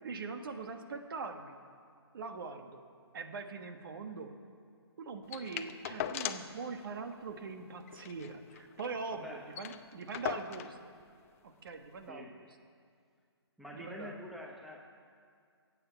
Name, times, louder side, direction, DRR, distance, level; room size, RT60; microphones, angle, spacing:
voice 1, 0.0-1.6 2.1-2.8 3.1-4.3 5.0-10.8 11.4-12.5 13.7-14.2, right 4 dB, 55° right, 7 dB, 1.4 m, -42 dB
sound 1, 5.3-6.6 6.9-7.0 7.3-7.5 7.9-9.0 9.2-9.3 9.5-10.8 11.7-11.8, left 10 dB, 30° left, 0.6 m, -40 dB
voice 2, 9.1-9.5 12.1-12.3 13.6-14.9, left 1 dB, ahead, 0 dB, 0.9 m, -46 dB
21.5 x 8.7 x 5.7 m, 2.2 s
figure-of-eight pair, 140°, 14 cm